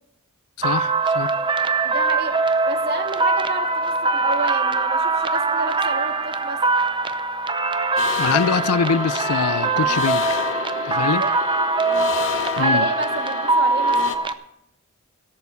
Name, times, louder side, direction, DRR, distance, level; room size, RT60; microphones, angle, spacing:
voice 1, 0.6-1.3 8.2-10.3 10.8-11.2 12.6-12.9, left 6 dB, 80° left, 0.5 m, -23 dB
sound 1, 0.6-14.3, right 3 dB, 20° right, 0.6 m, -22 dB
voice 2, 1.8-2.4 2.7-6.6 11.2-11.4 12.5-14.0, right 3 dB, 50° right, 1.7 m, -30 dB
sound 2, 8.0-14.2, left 7 dB, 60° left, 1.1 m, -29 dB
17.5 x 7.0 x 6.9 m
head